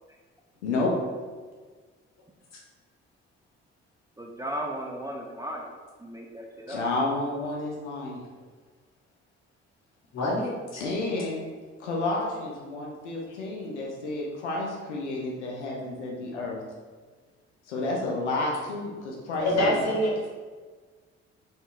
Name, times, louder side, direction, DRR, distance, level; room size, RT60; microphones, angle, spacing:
voice 1, 4.2-5.7 6.0-6.8, right 1 dB, 10° right, 0 dB, 0.4 m, -35 dB
voice 2, 6.7-8.2 10.8-11.4 11.8-16.6 17.7-19.9, left 2 dB, 80° left, -2 dB, 0.5 m, -30 dB
voice 3, 10.1-10.8 19.4-20.1, left 1 dB, 50° left, -4 dB, 1.3 m, -25 dB
3.8 x 3.7 x 2.4 m, 1.4 s
figure-of-eight pair, 40°, 34 cm